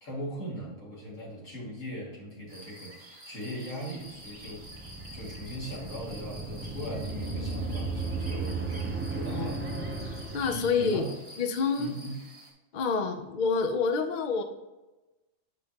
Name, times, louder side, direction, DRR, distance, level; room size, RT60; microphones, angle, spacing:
voice 1, 0.0-9.6 10.5-11.1 11.8-12.2, equal, 85° left, -5 dB, 2.7 m, -40 dB
sound 1, 2.5-12.5, equal, 35° right, 1.8 m, -48 dB
sound 2, 4.2-11.1, right 3 dB, 15° right, 0.4 m, -35 dB
voice 2, 9.3-9.8 10.3-11.1 11.4-11.9 12.7-14.4, left 5 dB, 50° left, 6 dB, 0.6 m, -28 dB
9.1 x 5.4 x 2.9 m, 1.1 s
omnidirectional pair, 1.4 m